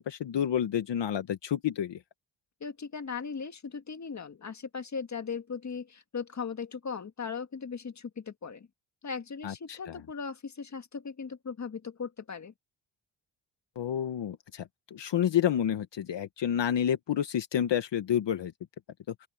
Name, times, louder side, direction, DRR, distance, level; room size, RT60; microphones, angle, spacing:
voice 1, 0.0-2.0 9.4-10.0 13.8-18.5, left 9 dB, 65° left, 1.3 m, -29 dB
voice 2, 2.6-8.7 9.0-12.5, left 5 dB, 35° left, 1.9 m, -38 dB
open air
cardioid pair, 110°, 47 cm